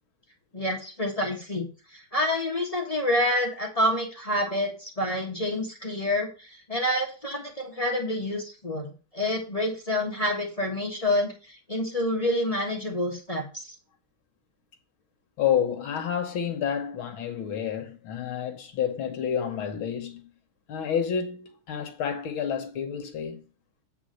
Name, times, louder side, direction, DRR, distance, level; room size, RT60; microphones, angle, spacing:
voice 1, 0.5-13.7, left 1 dB, 20° left, 1.2 m, -28 dB
voice 2, 15.4-20.3 20.7-23.4, left 8 dB, 70° left, 2.0 m, -29 dB
8.4 x 3.5 x 6.4 m
omnidirectional pair, 2.4 m